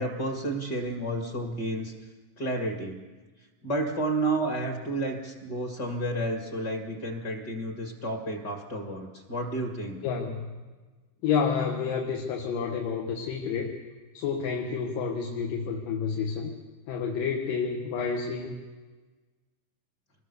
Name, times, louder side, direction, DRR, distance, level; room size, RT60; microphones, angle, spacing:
voice 1, 0.0-1.9 2.4-3.0 3.6-10.0, right 1 dB, 35° left, 3 dB, 2.3 m, -31 dB
voice 2, 10.0-10.5 11.2-13.7 14.1-16.5 16.9-18.6, left 6 dB, 80° left, 0 dB, 3.3 m, -29 dB
26.0 x 20.5 x 6.9 m, 1.3 s
omnidirectional pair, 4.0 m